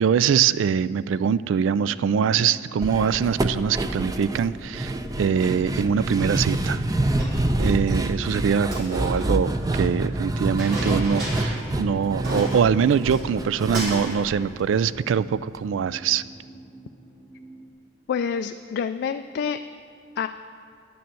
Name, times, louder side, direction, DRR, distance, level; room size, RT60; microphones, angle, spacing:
voice 1, 0.0-6.8 7.6-16.2, right 7 dB, 85° right, 17 dB, 0.3 m, -23 dB
sound 1, 0.6-17.7, right 2 dB, ahead, 1.0 m, -47 dB
sound 2, 2.8-15.1 15.4-15.5 15.8-15.9, right 1 dB, 20° right, 0.5 m, -27 dB
Chink clink, 7.2-8.0 8.6-9.9 10.6-11.7 12.0-12.1 12.2-13.4 13.7-14.3, right 1 dB, 60° right, 3.3 m, -34 dB
voice 2, 18.1-19.6 20.2-20.3, left 6 dB, 60° left, 8 dB, 0.3 m, -27 dB
10.5 x 6.9 x 7.6 m, 2.4 s
head